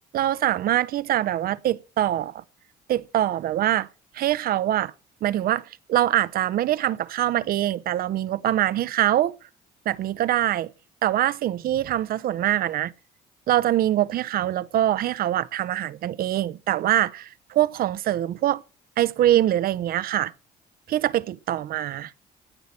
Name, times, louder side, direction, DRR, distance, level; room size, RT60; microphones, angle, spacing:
voice 1, 0.1-2.4 2.9-3.9 4.1-4.9 5.2-9.4 9.9-10.7 11.0-12.9 13.5-18.6 19.0-20.3 20.9-22.1, right 13 dB, 60° right, 0.8 m, -24 dB
17.0 x 5.8 x 9.6 m
cardioid pair, 110°, 17 cm